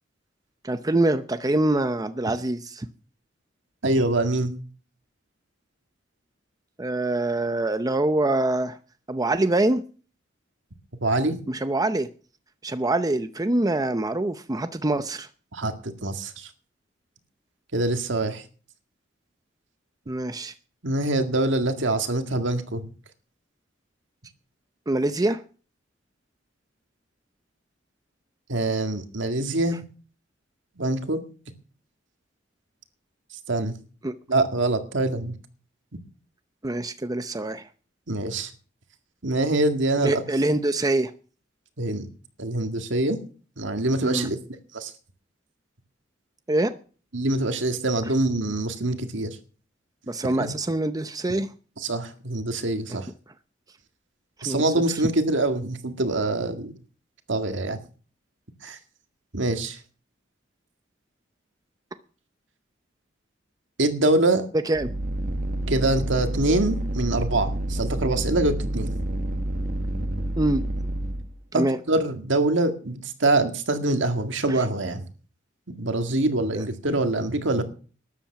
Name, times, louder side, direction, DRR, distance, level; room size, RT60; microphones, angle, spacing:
voice 1, 0.6-2.9 6.8-8.8 9.1-9.8 11.5-12.1 12.6-15.3 20.1-20.5 24.9-25.4 34.0-34.1 36.6-37.7 40.0-41.1 44.0-44.3 46.5-46.7 50.1-51.5 52.9-53.0 54.4-54.6 64.6-64.9 70.4-70.6 71.5-71.8 74.5-74.6 76.5-76.6, right 2 dB, 20° right, 10 dB, 0.7 m, -24 dB
voice 2, 3.8-4.6 11.0-11.4 15.5-16.5 17.7-18.4 20.8-22.8 28.5-29.8 30.8-31.2 33.5-33.7 34.3-35.4 38.1-38.5 39.2-40.2 41.8-42.1 42.4-43.2 43.6-44.4 44.7-44.9 47.1-49.3 50.4-50.5 51.8-53.1 54.4-56.7 57.3-57.8 58.6-58.8 59.3-59.8 63.8-64.4 65.7-68.9 71.5-75.0 75.7-77.6, right 2 dB, 70° right, 7 dB, 2.0 m, -24 dB
sound 1, 64.7-71.3, right 1 dB, 45° right, 1.2 m, -28 dB
13.0 x 10.0 x 5.9 m, 0.39 s
head